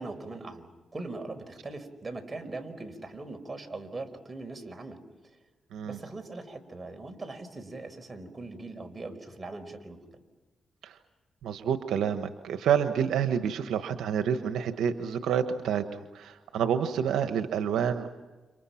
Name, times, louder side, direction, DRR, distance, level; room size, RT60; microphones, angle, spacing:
voice 1, 0.0-5.0 5.8-10.2, right 2 dB, 30° right, 6 dB, 5.1 m, -40 dB
voice 2, 11.4-18.1, right 8 dB, 90° right, 8 dB, 1.3 m, -28 dB
30.0 x 28.0 x 5.9 m, 1.2 s
cardioid pair, 65°, 0 cm